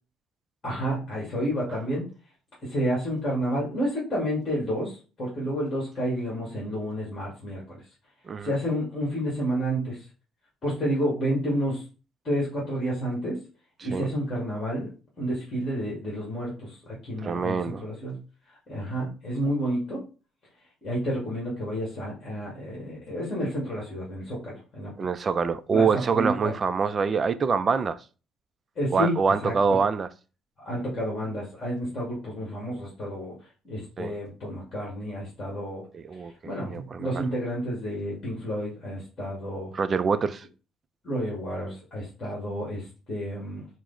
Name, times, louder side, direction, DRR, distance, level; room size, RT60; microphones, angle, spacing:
voice 1, 0.6-2.1 2.6-7.8 8.4-10.0 10.6-11.9 12.2-13.4 13.8-14.9 15.2-18.2 18.7-20.0 20.8-24.9 25.7-26.5 28.7-29.2 29.4-29.5 30.6-33.3 33.6-35.8 36.2-39.7 41.0-43.7, equal, 30° left, 1.6 m, -30 dB
voice 2, 8.3-8.6 13.9-14.1 17.2-17.8 25.0-28.0 28.9-30.1 34.0-34.1 35.9-36.3 36.6-37.2 39.7-40.5, right 5 dB, 30° right, 0.3 m, -25 dB
4.7 x 2.0 x 3.8 m
cardioid pair, 140°, 0 cm